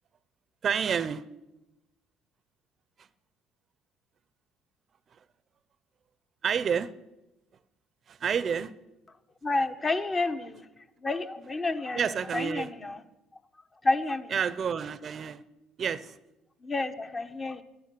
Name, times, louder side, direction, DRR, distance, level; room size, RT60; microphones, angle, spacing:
voice 1, 0.6-1.2 6.4-6.9 8.1-8.7 11.9-12.7 14.3-15.4 15.8-16.2, right 7 dB, 45° right, 15 dB, 0.7 m, -29 dB
voice 2, 9.4-10.7 11.0-13.0 13.8-14.4 16.6-17.6, left 2 dB, 25° left, 8 dB, 1.2 m, -30 dB
11.0 x 9.5 x 10.0 m, 0.97 s
cardioid pair, 100°, 0 cm